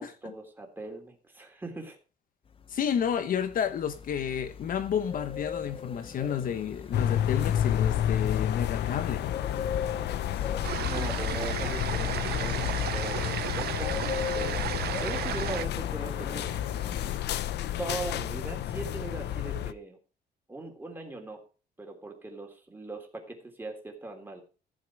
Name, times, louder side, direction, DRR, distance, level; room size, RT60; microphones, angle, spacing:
voice 1, 0.0-2.0 10.8-14.7 15.0-16.6 17.8-20.0 20.5-21.4 21.8-24.4, right 2 dB, 10° right, 3.3 m, -40 dB
sound 1, 2.5-17.2, left 7 dB, 30° left, 0.7 m, -40 dB
voice 2, 2.7-9.3, left 8 dB, 55° left, 1.0 m, -31 dB
sound 2, 6.9-19.7, left 11 dB, 80° left, 0.7 m, -30 dB
sound 3, 10.6-15.7, right 13 dB, 70° right, 0.6 m, -34 dB
14.5 x 7.6 x 4.7 m
cardioid pair, 150°, 17 cm